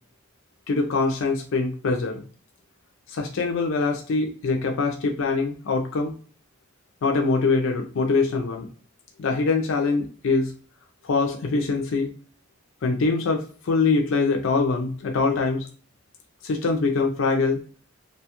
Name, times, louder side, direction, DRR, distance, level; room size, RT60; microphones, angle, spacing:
voice 1, 0.7-2.2 3.1-6.1 7.0-8.7 9.2-10.5 11.0-12.1 12.8-15.7 16.4-17.6, left 3 dB, 75° left, 2 dB, 0.4 m, -23 dB
2.7 x 2.2 x 2.8 m, 0.40 s
head